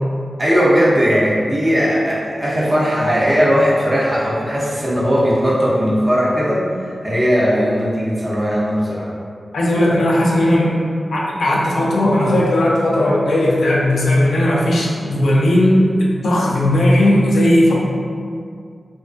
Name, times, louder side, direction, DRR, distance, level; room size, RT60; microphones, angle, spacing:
voice 1, 0.4-9.1, equal, 25° right, -6 dB, 0.7 m, -17 dB
voice 2, 9.5-10.8 11.1-17.7, left 1 dB, 85° left, -4 dB, 0.4 m, -16 dB
2.3 x 2.2 x 2.4 m, 2.2 s
cardioid pair, 40°, 0 cm